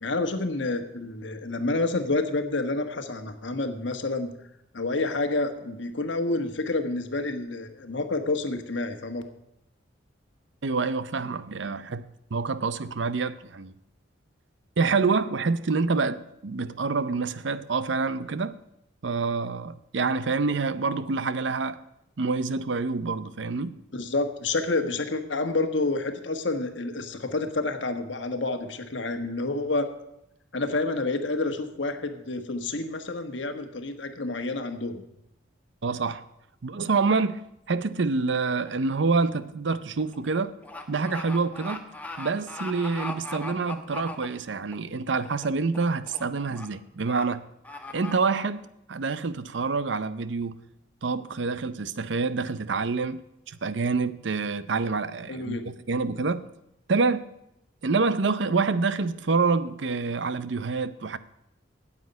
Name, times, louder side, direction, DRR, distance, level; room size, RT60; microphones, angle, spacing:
voice 1, 0.0-4.3 4.7-9.2 23.9-29.9 30.5-35.0 55.3-55.7, left 2 dB, 70° left, 1.3 m, -29 dB
voice 2, 10.6-13.7 14.8-18.6 19.0-21.8 22.2-23.8 35.8-36.2 36.6-40.5 40.9-41.9 42.2-47.4 47.9-50.6 51.0-53.2 53.5-55.6 55.9-56.4 56.9-57.3 57.8-61.2, right 4 dB, 65° right, 0.6 m, -27 dB
sound 1, 38.7-38.9 39.3-44.7 45.2-45.5 45.7-46.2 46.5-46.7 47.1-47.2 47.6-48.1, left 2 dB, 10° left, 1.2 m, -38 dB
9.5 x 8.3 x 9.3 m
head